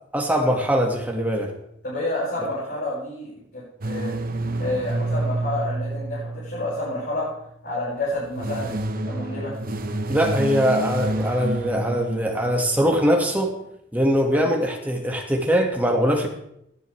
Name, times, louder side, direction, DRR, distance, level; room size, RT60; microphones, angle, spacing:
voice 1, 0.1-1.5 10.1-13.5 13.9-16.3, equal, 10° right, 1 dB, 2.2 m, -22 dB
voice 2, 1.8-4.2 4.6-7.3 7.6-9.5 14.3-14.5, left 1 dB, 55° left, -9 dB, 6.5 m, -29 dB
sound 1, 3.8-7.2 8.1-12.9, right 1 dB, 50° right, 1.1 m, -29 dB
18.0 x 10.5 x 3.5 m, 0.75 s
head